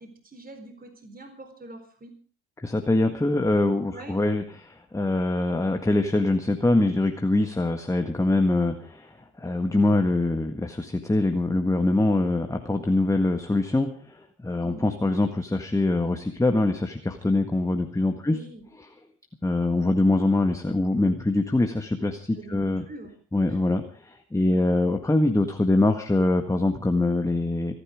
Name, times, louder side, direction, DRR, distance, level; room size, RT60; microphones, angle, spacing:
voice 1, 0.0-2.1 3.9-4.2 14.6-14.9 18.3-18.7 22.3-23.1 23.5-23.6 24.5-24.7, right 1 dB, 25° right, 6 dB, 4.1 m, -44 dB
voice 2, 2.6-18.4 19.4-22.8 23.3-27.7, left 2 dB, 10° left, 6 dB, 1.7 m, -24 dB
26.0 x 10.0 x 5.0 m, 0.39 s
supercardioid pair, 75°, 32 cm